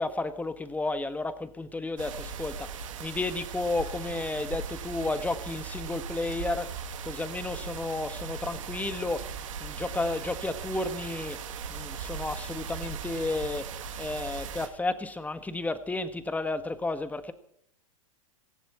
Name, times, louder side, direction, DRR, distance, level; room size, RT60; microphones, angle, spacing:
voice 1, 0.0-9.3 9.6-11.4 11.7-13.7 14.0-17.3, left 2 dB, 10° left, 12 dB, 1.5 m, -32 dB
sound 1, 2.0-14.7, right 6 dB, 70° right, 2.7 m, -38 dB
18.5 x 15.5 x 4.4 m, 0.69 s
hypercardioid pair, 105°, 17 cm